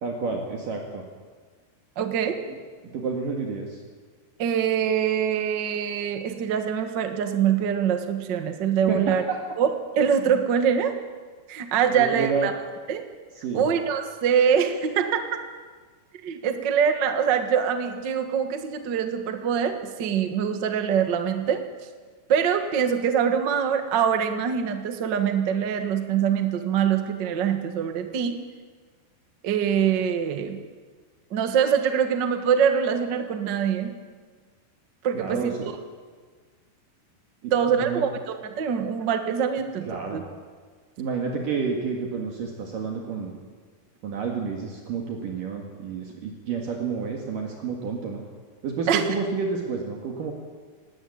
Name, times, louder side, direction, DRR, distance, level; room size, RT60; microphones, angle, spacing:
voice 1, 0.0-1.0 2.5-2.6 2.9-3.8 8.9-9.4 11.9-12.5 13.4-13.7 35.1-35.5 37.4-38.0 39.9-40.2 41.0-43.3 44.0-48.2 48.6-50.3, right 5 dB, 60° right, 0 dB, 3.4 m, -29 dB
voice 2, 2.0-2.4 4.4-9.2 9.6-9.7 10.0-10.9 11.5-12.5 12.9-13.0 13.5-15.3 16.2-21.6 22.3-28.4 29.4-30.6 31.3-33.9 35.0-35.5 37.5-38.2 38.6-40.2 48.9-49.0, right 8 dB, 80° right, 7 dB, 1.0 m, -24 dB
19.0 x 18.5 x 8.7 m, 1.5 s
omnidirectional pair, 4.7 m